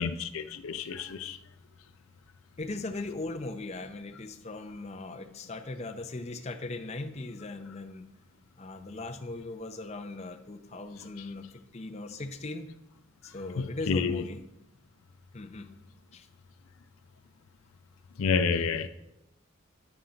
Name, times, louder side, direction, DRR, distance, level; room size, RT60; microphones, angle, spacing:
voice 1, 0.0-1.4 13.6-14.2 18.2-18.9, left 5 dB, 90° left, 0.4 m, -29 dB
voice 2, 2.6-8.0 8.6-12.7 13.2-14.4 15.3-15.7 16.1-16.3, left 2 dB, 30° left, 0.5 m, -39 dB
9.6 x 5.7 x 3.8 m
head